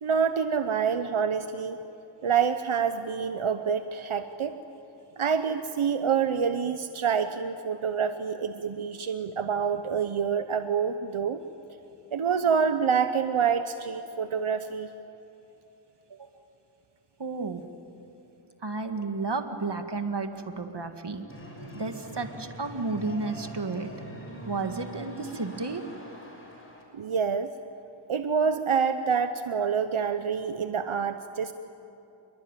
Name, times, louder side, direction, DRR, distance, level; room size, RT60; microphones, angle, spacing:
voice 1, 0.0-1.8 2.2-4.5 5.2-11.4 12.1-14.9 26.9-27.5 28.1-31.5, right 6 dB, 90° right, 9 dB, 0.9 m, -27 dB
voice 2, 17.2-17.7 18.6-21.3 21.7-23.9 24.4-25.8, right 3 dB, 55° right, 6 dB, 2.0 m, -32 dB
sound 1, 21.3-26.8, right 1 dB, 25° left, 6.3 m, -43 dB
27.5 x 22.0 x 9.1 m, 2.9 s
wide cardioid pair, 50°, 48 cm